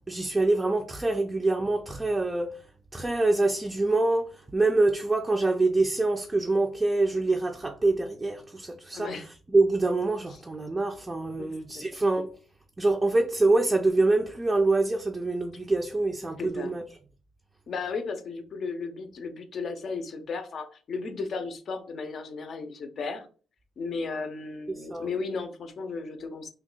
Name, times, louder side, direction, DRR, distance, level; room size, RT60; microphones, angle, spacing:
voice 1, 0.1-2.7 2.9-9.1 9.5-12.3 12.8-16.8 24.7-25.1, right 2 dB, 20° right, 0.4 m, -25 dB
voice 2, 8.9-9.3 11.4-11.8 16.4-16.7 17.7-23.3 23.8-26.5, left 4 dB, 55° left, 0.6 m, -35 dB
2.7 x 2.2 x 3.8 m
cardioid pair, 90°, 0 cm